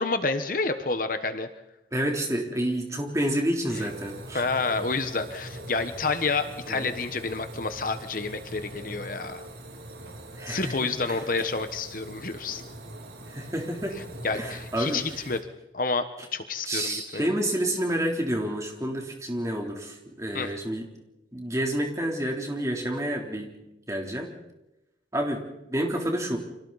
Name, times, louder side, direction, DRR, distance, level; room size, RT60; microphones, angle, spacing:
voice 1, 0.0-1.5 4.3-9.5 10.5-12.6 14.2-15.4 15.7-16.1 16.3-17.3 20.3-20.5, left 3 dB, 45° left, 9 dB, 1.2 m, -29 dB
voice 2, 1.9-4.4 6.7-6.9 10.3-11.2 13.3-14.0 14.3-15.2 16.7-20.9 21.3-23.6 23.9-24.3 25.1-26.4, right 1 dB, 15° right, 1 dB, 3.4 m, -29 dB
sound 1, 3.7-15.4, right 1 dB, 65° right, 2.7 m, -42 dB
29.5 x 25.0 x 4.2 m, 0.93 s
head